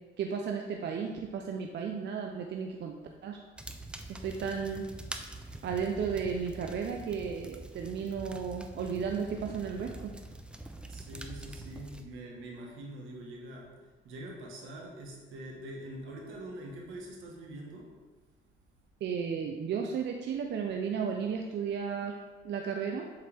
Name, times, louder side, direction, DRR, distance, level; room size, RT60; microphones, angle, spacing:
voice 1, 0.2-2.9 3.2-3.4 4.2-4.9 5.6-10.1 19.0-22.1 22.4-23.1, right 6 dB, 60° right, 3 dB, 0.6 m, -34 dB
sound 1, 3.6-12.0, right 1 dB, 5° right, 0.6 m, -45 dB
voice 2, 10.8-17.9, right 1 dB, 85° right, -1 dB, 1.5 m, -44 dB
7.5 x 4.7 x 3.5 m, 1.3 s
cardioid pair, 90°, 20 cm